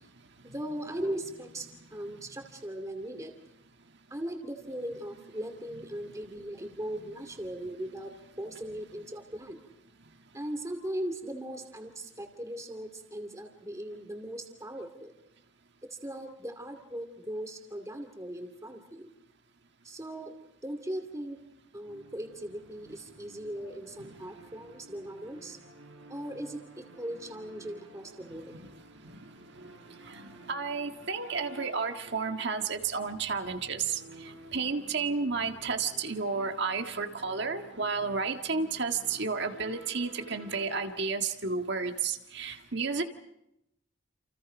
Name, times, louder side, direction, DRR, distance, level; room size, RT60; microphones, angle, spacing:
voice 1, 0.4-3.3 4.1-8.1 8.4-9.6 10.3-15.1 16.0-19.1 19.8-20.3 20.6-21.4 21.7-25.6 26.1-28.5, right 1 dB, 15° right, 5 dB, 2.5 m, -39 dB
sound 1, 21.8-40.9, right 2 dB, 90° right, 7.5 m, -53 dB
voice 2, 28.2-28.7 29.0-43.0, right 4 dB, 55° right, 5 dB, 1.8 m, -32 dB
29.0 x 28.5 x 5.2 m, 0.83 s
head